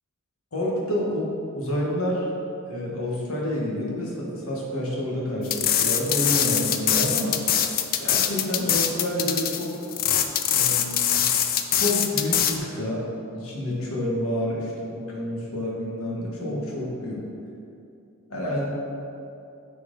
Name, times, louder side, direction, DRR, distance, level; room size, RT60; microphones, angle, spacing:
voice 1, 0.5-2.3 2.7-7.3 8.0-9.7 10.5-11.2 11.7-13.0 13.3-17.2 18.3-18.7, left 1 dB, 75° left, -3 dB, 1.6 m, -28 dB
sound 1, 5.5-12.6, left 9 dB, 40° left, 0.4 m, -23 dB
9.9 x 4.5 x 3.9 m, 2.7 s
head